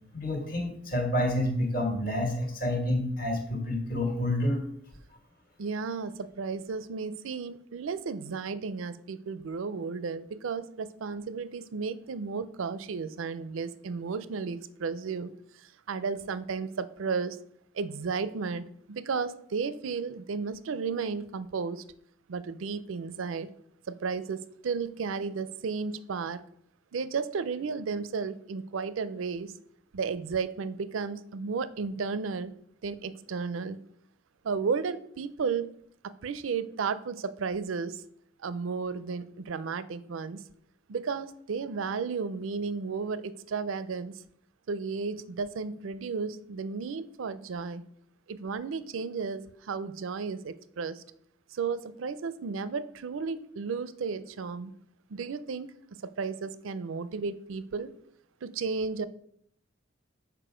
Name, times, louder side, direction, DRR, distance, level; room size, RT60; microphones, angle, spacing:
voice 1, 0.1-4.6, left 1 dB, 45° left, 3 dB, 1.5 m, -28 dB
voice 2, 5.6-15.3 15.6-17.4 17.7-21.8 22.3-23.5 23.9-26.4 26.9-29.5 29.9-32.5 32.8-33.8 34.4-35.7 36.0-38.0 38.4-40.4 40.9-44.2 44.7-47.8 48.3-51.0 51.5-54.7 55.1-55.7 56.0-57.9 58.4-59.1, right 5 dB, 80° right, 15 dB, 0.5 m, -33 dB
6.8 x 4.8 x 5.0 m, 0.69 s
head